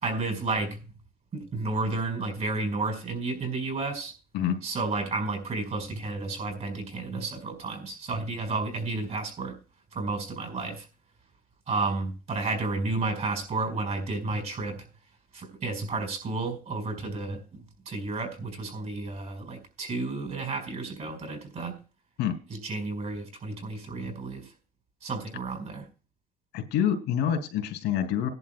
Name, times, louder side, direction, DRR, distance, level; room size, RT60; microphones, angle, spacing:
voice 1, 0.0-0.8 1.3-4.1 4.6-9.6 9.9-10.9 11.7-14.9 15.3-21.8 22.6-24.5 25.0-25.8, right 3 dB, 45° right, 5 dB, 4.8 m, -32 dB
voice 2, 26.5-28.3, left 9 dB, 90° left, 7 dB, 2.7 m, -27 dB
19.5 x 11.0 x 2.2 m, 0.34 s
cardioid pair, 110°, 17 cm